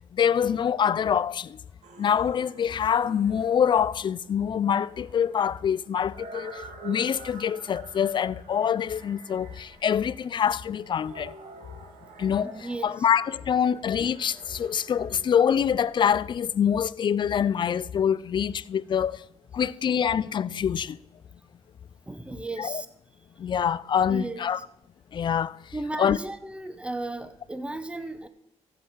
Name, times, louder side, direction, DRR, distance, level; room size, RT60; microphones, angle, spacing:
voice 1, 0.1-1.6 2.0-11.3 12.2-12.5 12.8-19.2 19.5-21.0 22.6-22.8 23.4-24.6 25.1-25.6 26.0-26.2, left 8 dB, 40° left, 0.3 m, -25 dB
sound 1, 1.8-16.6, right 4 dB, 75° right, 1.7 m, -49 dB
voice 2, 12.4-12.9 22.1-22.9 24.1-24.4 25.7-28.3, right 2 dB, 10° right, 0.7 m, -35 dB
15.5 x 7.5 x 4.5 m
cardioid pair, 135°, 12 cm